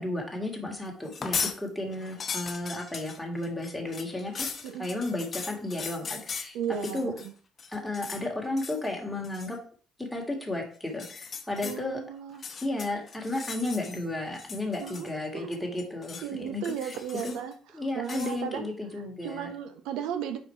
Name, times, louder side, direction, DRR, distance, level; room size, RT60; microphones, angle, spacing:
voice 1, 0.0-4.5 4.8-6.6 6.9-7.1 7.7-9.6 10.0-12.0 12.6-17.0 17.2-17.4 17.7-19.5, left 2 dB, 5° left, -1 dB, 2.2 m, -33 dB
sound 1, 1.0-1.6 1.9-7.3 7.6-8.2 8.6-8.9 9.2-9.5 10.9-11.8 12.3-14.0 14.3-15.3 15.5-16.3 16.6-17.5 18.0-18.4, left 6 dB, 40° left, 0.9 m, -38 dB
voice 2, 6.5-7.3 11.6-12.4 14.8-15.1 15.3-15.5 16.2-17.5 17.9-18.7 19.2-20.4, right 8 dB, 90° right, 8 dB, 0.7 m, -35 dB
4.8 x 4.6 x 4.8 m, 0.43 s
cardioid pair, 85°, 0 cm